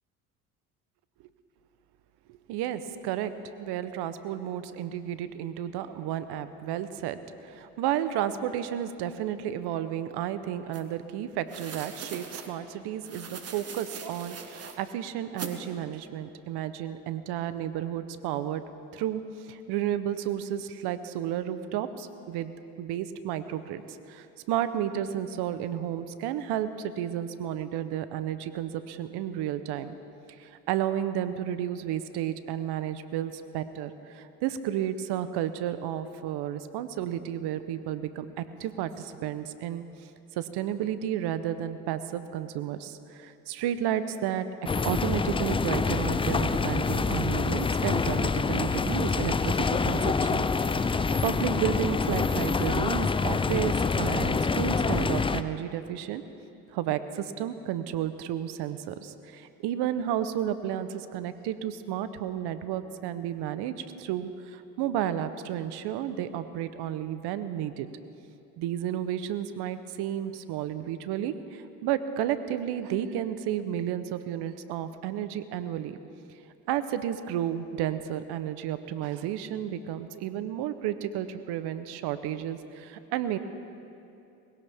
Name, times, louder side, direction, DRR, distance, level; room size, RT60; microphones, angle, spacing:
voice 1, 2.3-3.3 3.6-18.6 18.9-22.5 22.8-30.0 30.4-39.8 40.4-44.5 44.8-50.5 50.8-56.2 56.7-67.9 68.6-76.0 76.7-83.4, right 10 dB, 65° right, 12 dB, 1.0 m, -32 dB
sound 1, 10.7-10.8 11.5-12.5 13.0-14.8 15.4-15.6, right 5 dB, 35° right, 1.6 m, -41 dB
sound 2, 44.7-55.4, left 4 dB, 15° left, 0.4 m, -26 dB
20.5 x 17.0 x 3.6 m, 2.7 s
hypercardioid pair, 70°, 43 cm